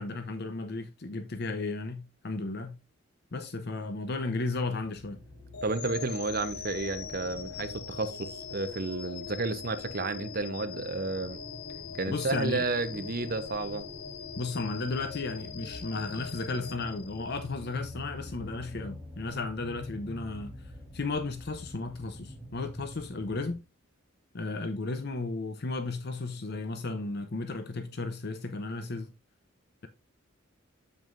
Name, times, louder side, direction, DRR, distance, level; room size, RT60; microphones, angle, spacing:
voice 1, 0.0-2.8 3.3-5.2 12.1-12.7 14.4-20.5 20.9-23.6 24.3-29.1, left 3 dB, 50° left, 0.7 m, -34 dB
sound 1, 4.8-23.5, left 2 dB, 5° left, 3.7 m, -46 dB
sound 2, 5.5-17.6, left 6 dB, 85° left, 1.2 m, -42 dB
voice 2, 5.6-11.4 12.0-13.9, right 3 dB, 45° right, 0.9 m, -32 dB
7.9 x 7.5 x 2.5 m
head